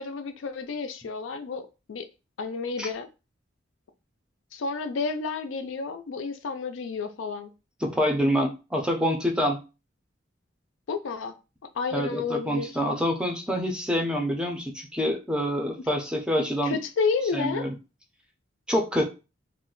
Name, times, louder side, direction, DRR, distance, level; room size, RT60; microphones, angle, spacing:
voice 1, 0.0-2.1 2.4-3.1 4.5-7.5 10.9-11.3 11.8-12.7 16.4-17.6, left 4 dB, 75° left, 8 dB, 0.4 m, -31 dB
voice 2, 7.8-9.6 11.9-16.8 17.3-17.7 18.7-19.1, equal, 5° right, 2 dB, 0.5 m, -26 dB
2.4 x 2.1 x 3.7 m, 0.29 s
head